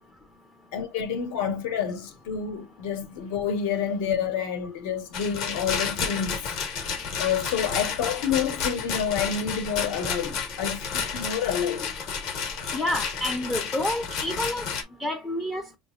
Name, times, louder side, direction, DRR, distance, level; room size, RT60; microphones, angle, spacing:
voice 1, 0.7-11.9, left 7 dB, 70° left, 1.2 m, -29 dB
Rattle, 5.1-14.8, left 6 dB, 50° left, 1.1 m, -31 dB
voice 2, 12.7-14.7 15.0-15.7, left 1 dB, 10° left, 0.4 m, -29 dB
5.4 x 2.9 x 2.4 m
cardioid pair, 175°, 0 cm